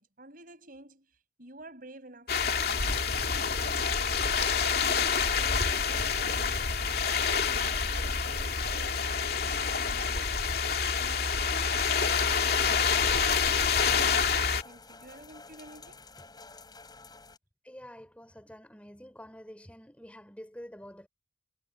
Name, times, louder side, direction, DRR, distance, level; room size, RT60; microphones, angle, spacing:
voice 1, 0.0-3.6 3.9-10.6 10.9-14.1 14.6-16.1, right 2 dB, 55° right, 5.8 m, -52 dB
sound 1, 2.3-14.6, left 6 dB, 60° left, 2.6 m, -27 dB
sound 2, 11.6-17.4, left 4 dB, 25° left, 7.8 m, -50 dB
voice 2, 17.6-21.1, equal, 10° left, 4.9 m, -48 dB
head